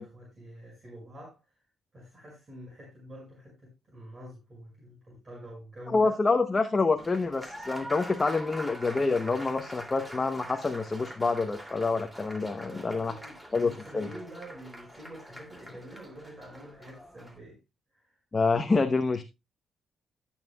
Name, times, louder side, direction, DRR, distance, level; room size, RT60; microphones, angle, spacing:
voice 1, 0.0-1.6 1.9-6.1 12.5-17.6 17.9-18.2, equal, 35° right, 5.7 m, -47 dB
voice 2, 5.9-13.1 13.5-14.1 18.3-19.2, left 3 dB, 25° left, 0.9 m, -27 dB
Applause, 7.0-17.4, equal, 10° right, 2.7 m, -44 dB
17.5 x 7.3 x 2.3 m
cardioid pair, 90°, 0 cm